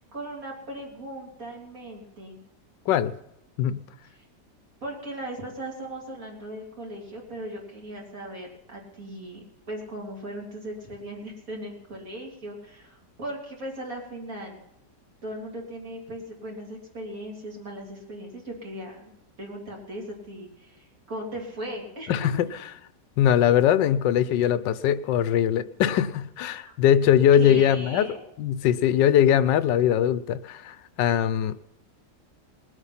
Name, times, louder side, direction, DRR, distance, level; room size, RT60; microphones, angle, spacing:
voice 1, 0.1-2.4 4.0-4.3 4.8-14.6 15.2-19.1 19.4-22.5 26.6-26.7 27.3-28.2, right 1 dB, 50° right, -1 dB, 3.5 m, -38 dB
voice 2, 22.1-22.5 23.2-28.1 28.4-31.5, left 10 dB, 80° left, 15 dB, 1.3 m, -21 dB
20.5 x 8.1 x 5.7 m, 0.79 s
omnidirectional pair, 1.9 m